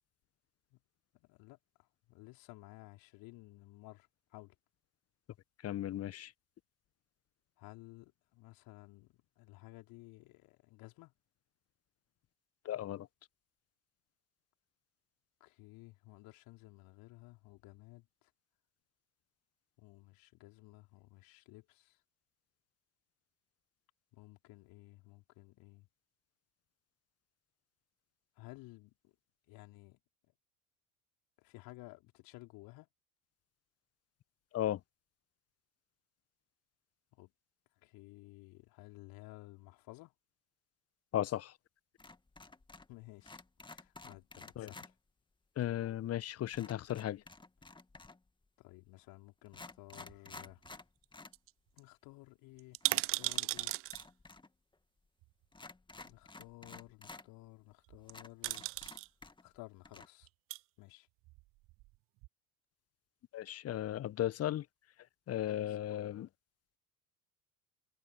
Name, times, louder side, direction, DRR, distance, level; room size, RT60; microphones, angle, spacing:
voice 1, 1.1-4.5 7.6-11.1 15.4-18.3 19.8-22.0 24.1-25.9 28.4-29.1 29.5-30.0 31.4-32.9 37.1-37.3 37.8-40.1 42.9-44.9 48.6-50.6 51.7-53.7 56.0-58.6 59.4-60.3 60.8-61.1 65.6-65.8, left 22 dB, 50° left, 4.7 m, -55 dB
voice 2, 5.6-6.3 12.6-13.1 34.5-34.8 41.1-41.5 44.6-44.7 45.6-47.2 63.3-64.6 65.3-66.3, left 12 dB, 35° left, 1.4 m, -36 dB
sound 1, 42.0-43.0 43.2-44.9 46.5-48.3 49.0-49.1 49.5-51.4 51.7-51.8 52.8-54.5 54.7-54.8 55.5-57.3 57.7-57.8 58.1-59.6 59.8-60.1, left 3 dB, 10° left, 2.4 m, -53 dB
sound 2, 49.9-50.7 51.0-51.1 51.3-51.5 51.8-51.9 52.6-54.0 55.2-55.3 57.9-58.1 58.4-59.1 60.2-60.6 61.3-62.0 62.2-62.3, right 22 dB, 35° right, 0.4 m, -37 dB
figure-of-eight pair, 70°, 43 cm